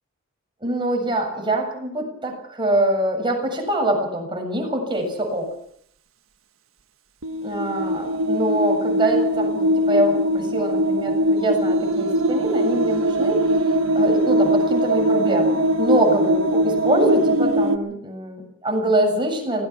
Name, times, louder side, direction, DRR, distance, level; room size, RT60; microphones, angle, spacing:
voice 1, 0.6-5.5 7.4-13.4 14.0-19.7, right 1 dB, 25° right, 2 dB, 7.2 m, -24 dB
sound 1, 7.2-17.8, right 1 dB, 85° right, 1.5 m, -21 dB
24.5 x 18.5 x 6.0 m, 0.66 s
head